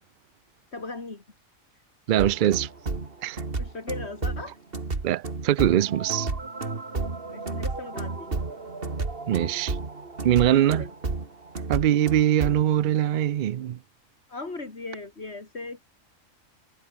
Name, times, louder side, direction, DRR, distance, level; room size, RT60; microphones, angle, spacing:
voice 1, 0.7-1.2 3.6-4.6 7.3-8.3 10.5-10.9 14.3-15.8, left 3 dB, 50° left, 3.2 m, -37 dB
voice 2, 2.1-2.7 3.2-3.4 5.0-6.3 9.3-9.8 10.2-10.8 11.7-13.8, right 11 dB, 65° right, 0.5 m, -22 dB
sound 1, 2.2-12.7, right 3 dB, 45° right, 2.5 m, -32 dB
omnidirectional pair, 1.4 m